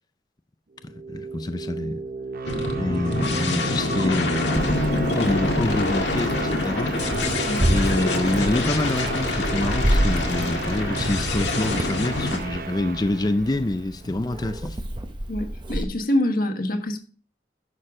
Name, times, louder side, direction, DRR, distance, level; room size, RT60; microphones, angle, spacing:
voice 1, 0.8-2.0 2.7-7.0 7.7-14.8, left 2 dB, 20° left, 0.4 m, -26 dB
sound 1, 0.8-13.9, right 4 dB, 50° right, 0.8 m, -34 dB
sound 2, 2.4-12.4, left 2 dB, 80° left, 1.9 m, -26 dB
Meow, 4.5-15.8, right 1 dB, 25° right, 1.0 m, -29 dB
voice 2, 15.3-17.0, left 1 dB, 50° left, 1.5 m, -25 dB
11.0 x 6.9 x 3.7 m
head